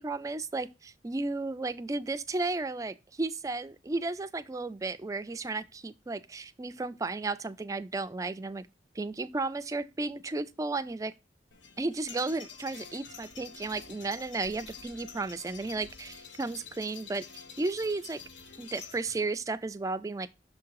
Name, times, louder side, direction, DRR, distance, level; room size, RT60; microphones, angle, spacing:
voice 1, 0.0-8.7 9.0-11.1 11.8-18.2 18.6-20.3, right 3 dB, 20° right, 0.3 m, -34 dB
sound 1, 11.5-19.3, left 6 dB, 90° left, 0.9 m, -48 dB
6.3 x 3.6 x 4.6 m
head